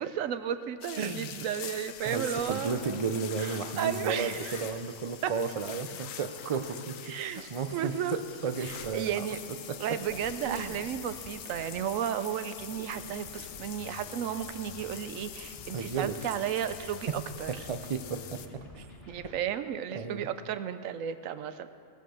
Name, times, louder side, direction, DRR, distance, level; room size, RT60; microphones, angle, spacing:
voice 1, 0.0-3.0 3.4-4.6 5.2-5.3 7.1-8.2 8.6-9.4 9.8-17.5 19.1-21.7, right 9 dB, 75° right, 12 dB, 1.0 m, -34 dB
sound 1, 0.8-18.5, left 9 dB, 75° left, 1.0 m, -44 dB
voice 2, 1.0-1.3 2.0-6.9 7.2-9.3 9.9-10.0 10.4-10.8 15.7-16.1 17.7-18.4 18.8-18.9 19.9-20.3, right 5 dB, 60° right, 9 dB, 0.3 m, -33 dB
sound 2, 8.6-8.9 10.1-11.9 12.6-19.4, left 2 dB, 50° left, 1.6 m, -51 dB
17.5 x 6.6 x 6.3 m, 2.3 s
omnidirectional pair, 1.4 m